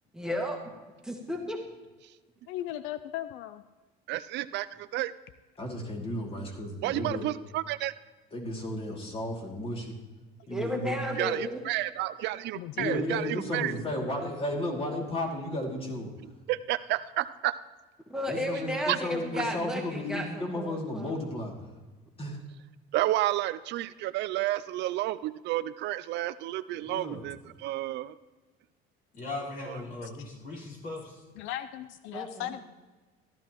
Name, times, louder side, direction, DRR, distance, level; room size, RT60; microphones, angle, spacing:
voice 1, 0.1-0.7 1.0-1.7 10.5-11.6 18.1-20.3 20.5-21.1 32.1-32.5, equal, 5° right, 0 dB, 1.5 m, -33 dB
voice 2, 2.5-3.6 12.6-13.0 30.0-30.1 31.4-32.6, left 13 dB, 80° left, 12 dB, 0.5 m, -37 dB
voice 3, 4.1-5.1 6.8-7.9 11.1-13.7 16.5-17.6 18.9-19.0 22.9-28.2 29.7-29.8, right 15 dB, 65° right, 14 dB, 0.4 m, -31 dB
voice 4, 5.6-7.2 8.3-10.0 10.5-11.0 12.7-16.1 18.3-21.5 22.2-22.4 26.8-27.3, left 1 dB, 30° left, 0 dB, 2.6 m, -34 dB
voice 5, 29.1-31.2, left 2 dB, 45° left, -5 dB, 4.4 m, -38 dB
14.5 x 12.0 x 3.0 m, 1.2 s
cardioid pair, 110°, 20 cm